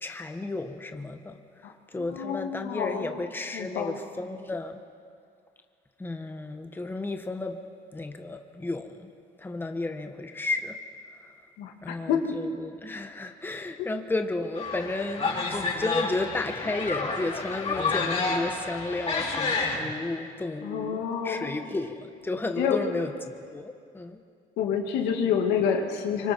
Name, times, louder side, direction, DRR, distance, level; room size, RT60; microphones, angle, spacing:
voice 1, 0.0-4.8 6.0-7.6 7.9-9.1 9.4-10.8 11.2-11.3 11.8-24.2, left 2 dB, 10° left, 6 dB, 1.2 m, -33 dB
voice 2, 1.6-3.1 3.5-3.9 11.6-12.2 13.8-13.9 20.6-21.7 22.6-22.8 24.6-26.3, left 7 dB, 85° left, 3 dB, 2.3 m, -28 dB
sound 1, 14.5-19.8, left 4 dB, 40° left, 5.6 m, -29 dB
25.0 x 24.5 x 4.6 m, 2.2 s
cardioid pair, 110°, 17 cm